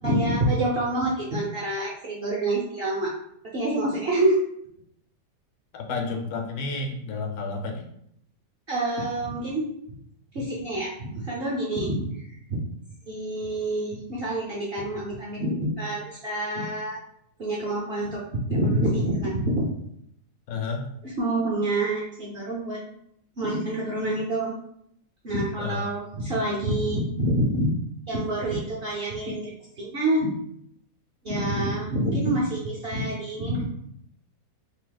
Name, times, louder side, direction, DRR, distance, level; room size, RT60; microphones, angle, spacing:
voice 1, 0.0-3.1 3.5-4.4 8.7-10.0 10.3-12.2 12.5-12.6 13.1-17.0 17.4-19.6 21.0-22.8 23.4-24.5 25.2-27.7 28.1-29.5 29.8-30.4 31.2-33.6, right 1 dB, 50° right, -5 dB, 0.7 m, -27 dB
voice 2, 5.7-7.9 20.5-20.9 25.6-25.8, left 4 dB, 75° left, 2 dB, 1.0 m, -31 dB
2.8 x 2.7 x 3.9 m, 0.72 s
omnidirectional pair, 1.7 m